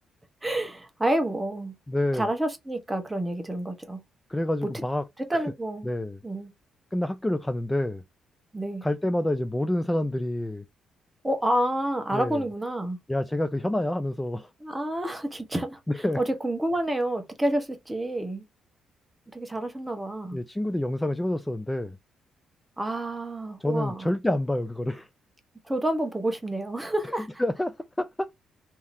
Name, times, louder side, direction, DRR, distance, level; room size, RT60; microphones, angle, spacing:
voice 1, 0.4-1.7 2.1-4.0 5.3-5.9 6.2-6.5 8.5-8.8 11.2-13.0 14.6-15.8 16.2-18.4 19.3-20.4 22.8-24.1 25.7-27.3, right 1 dB, 10° right, 1.0 m, -29 dB
voice 2, 1.9-2.3 4.3-5.0 5.3-5.4 5.8-6.2 6.9-8.0 8.8-10.6 12.1-12.4 13.1-14.5 15.9-16.2 20.3-22.0 23.6-25.1 27.4-28.3, left 1 dB, 10° left, 0.3 m, -28 dB
3.6 x 2.8 x 2.6 m
cardioid pair, 90°, 0 cm